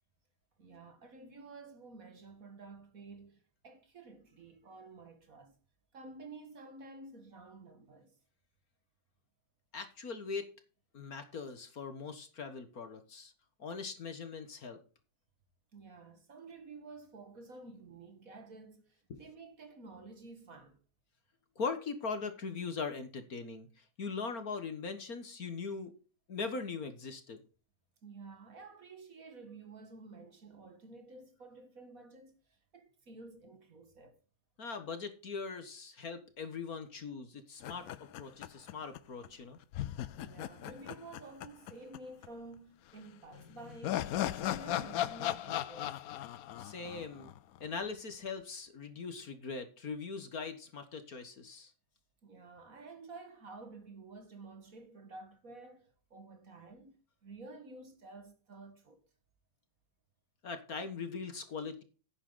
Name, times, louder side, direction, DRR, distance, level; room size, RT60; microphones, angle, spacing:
voice 1, 0.6-5.6 5.9-8.2 15.7-20.8 28.0-34.2 40.2-46.0 52.2-59.0, right 3 dB, 45° right, 1.9 m, -51 dB
voice 2, 9.7-10.5 10.9-13.3 13.6-14.8 19.1-19.2 21.6-25.9 26.3-27.4 34.6-37.9 38.2-39.6 46.6-47.3 47.6-51.7 60.4-61.8, left 4 dB, 50° left, 1.8 m, -40 dB
sound 1, 37.6-39.0 39.2-39.3 39.7-42.0 42.2-42.3 43.3-47.7, left 12 dB, 70° left, 0.8 m, -37 dB
11.0 x 8.9 x 3.9 m
omnidirectional pair, 2.1 m